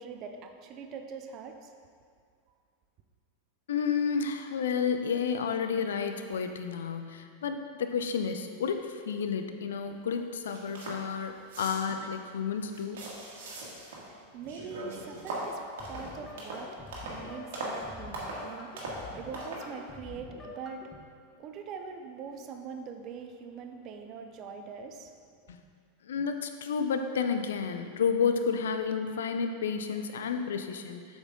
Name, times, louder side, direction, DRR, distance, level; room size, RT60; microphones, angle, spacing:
voice 1, 0.0-1.7 14.0-16.8 17.1-20.9 21.4-25.1, right 5 dB, 35° right, 5 dB, 0.6 m, -43 dB
voice 2, 3.7-13.0 25.5-25.6 26.1-31.1, left 6 dB, 60° left, 7 dB, 0.5 m, -31 dB
sound 1, 10.1-10.2 10.4-11.0 11.4-12.1 12.5-14.1 14.4-17.2 17.5-17.8 18.1-18.5 18.8-19.0 19.3-19.7, right 2 dB, 55° right, 1.6 m, -39 dB
sound 2, 15.8-21.0, left 3 dB, 15° left, 0.9 m, -47 dB
7.9 x 6.3 x 3.6 m, 2.2 s
figure-of-eight pair, 90°, 0 cm